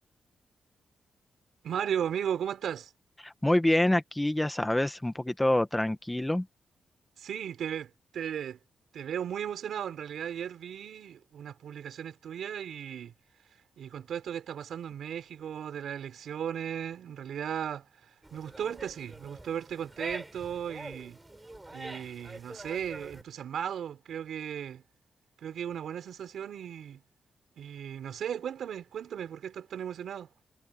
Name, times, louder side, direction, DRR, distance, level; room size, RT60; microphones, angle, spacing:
voice 1, 1.6-2.9 7.2-8.6 8.9-13.1 13.8-21.2 21.7-24.8 25.4-27.0 27.6-30.3, right 9 dB, 80° right, 3.9 m, -36 dB
voice 2, 3.2-6.5, left 1 dB, 10° left, 1.0 m, -26 dB
sound 1, 18.2-23.2, right 2 dB, 15° right, 6.5 m, -45 dB
wide cardioid pair, 125°, 0 cm